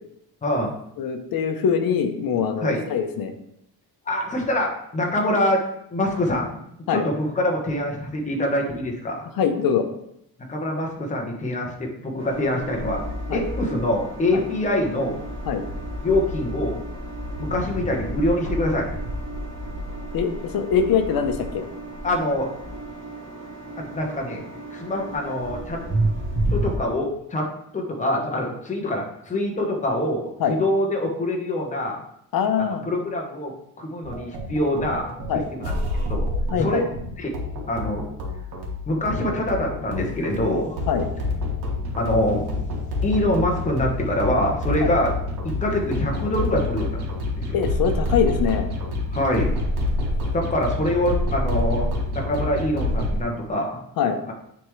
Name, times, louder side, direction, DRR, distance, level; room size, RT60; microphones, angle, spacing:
voice 1, 0.4-0.7 2.6-2.8 4.1-5.6 5.9-6.6 6.9-9.2 10.5-13.0 13.3-15.2 16.0-16.8 17.4-18.9 22.0-22.5 23.8-24.4 24.7-25.8 26.5-27.5 27.7-32.0 32.6-33.5 33.8-35.1 35.5-35.7 36.1-36.3 36.6-36.8 37.2-37.3 37.7-38.0 38.9-40.8 42.0-42.4 43.0-45.1 45.4-47.0 47.4-47.5 49.1-49.6 50.3-53.8 54.3-54.4, left 1 dB, 20° left, 0 dB, 1.1 m, -24 dB
voice 2, 1.0-3.3 6.9-7.0 9.4-9.9 13.3-13.4 14.3-14.4 15.5-15.6 20.1-21.6 30.4-30.6 32.3-32.8 35.3-35.4 36.5-36.8 40.9-41.0 44.8-44.9 47.5-48.7 54.0-54.2, left 7 dB, 65° left, 6 dB, 0.9 m, -23 dB
sound 1, 12.2-26.8, right 1 dB, 30° right, 1.2 m, -31 dB
sound 2, 34.0-53.2, left 2 dB, 75° right, 1.7 m, -27 dB
9.5 x 3.6 x 3.2 m, 0.76 s
cardioid pair, 170°, 38 cm